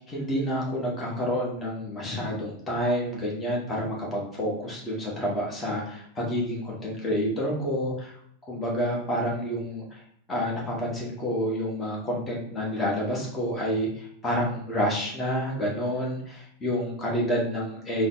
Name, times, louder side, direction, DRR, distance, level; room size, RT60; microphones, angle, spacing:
voice 1, 0.1-8.2 8.5-10.0 10.3-18.1, equal, 15° left, -4 dB, 1.2 m, -29 dB
3.9 x 2.1 x 3.8 m, 0.69 s
figure-of-eight pair, 90°, 0 cm